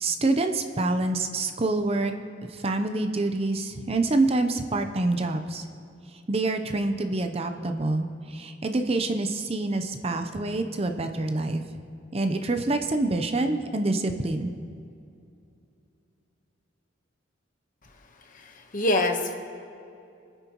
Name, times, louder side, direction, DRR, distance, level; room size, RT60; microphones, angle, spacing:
voice 1, 0.0-2.1 2.5-5.6 6.3-11.6 12.1-14.5, right 2 dB, 30° right, 6 dB, 0.7 m, -26 dB
voice 2, 18.4-19.3, left 1 dB, 45° left, 4 dB, 1.1 m, -25 dB
25.0 x 9.1 x 3.0 m, 2.6 s
head